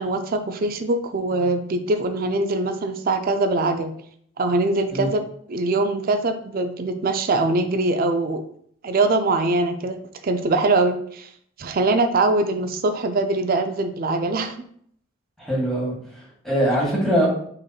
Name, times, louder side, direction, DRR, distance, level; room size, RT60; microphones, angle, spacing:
voice 1, 0.0-3.9 4.4-5.2 5.5-8.4 8.8-10.0 10.2-11.3 11.6-14.6, right 2 dB, 45° right, 7 dB, 0.4 m, -22 dB
voice 2, 15.4-17.3, equal, ahead, -6 dB, 1.9 m, -22 dB
5.0 x 4.3 x 2.4 m, 0.63 s
head